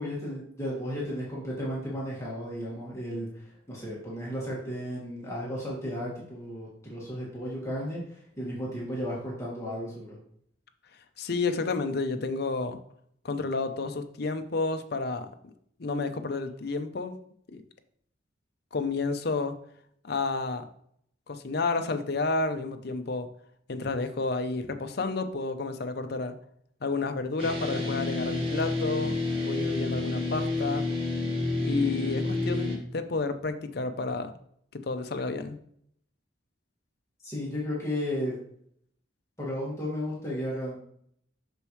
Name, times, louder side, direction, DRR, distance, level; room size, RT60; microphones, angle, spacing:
voice 1, 0.0-10.2 37.2-38.4 39.4-40.8, equal, 15° left, -6 dB, 1.8 m, -34 dB
voice 2, 11.2-12.8 13.2-15.3 15.8-17.1 17.5-17.6 18.7-19.5 20.0-20.6 21.3-23.3 23.7-26.3 26.8-29.2 29.4-30.9 31.6-34.3 34.7-35.6, left 3 dB, 55° left, 8 dB, 0.6 m, -30 dB
sound 1, 27.4-32.8, left 3 dB, 30° right, 1.4 m, -29 dB
6.7 x 6.2 x 3.1 m, 0.66 s
head